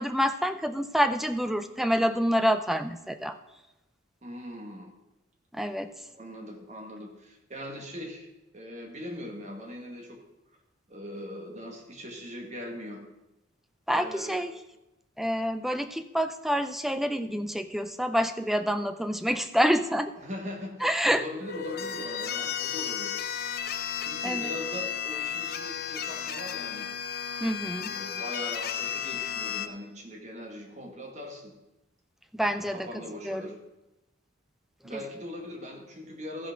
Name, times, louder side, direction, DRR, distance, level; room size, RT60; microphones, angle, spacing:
voice 1, 0.0-3.4 5.5-5.9 13.9-14.5 15.2-20.1 20.8-21.2 24.2-24.5 27.4-27.9 32.3-33.5 34.9-35.0, equal, ahead, 9 dB, 0.5 m, -27 dB
voice 2, 4.2-4.9 6.1-8.3 8.5-10.2 10.9-13.0 13.9-14.4 20.2-20.7 21.1-23.2 24.0-26.9 27.8-31.5 32.7-33.6 34.8-36.5, left 1 dB, 35° right, 1 dB, 1.9 m, -40 dB
sound 1, 21.4-29.7, left 8 dB, 50° left, 0.6 m, -33 dB
13.5 x 5.8 x 6.1 m, 0.97 s
head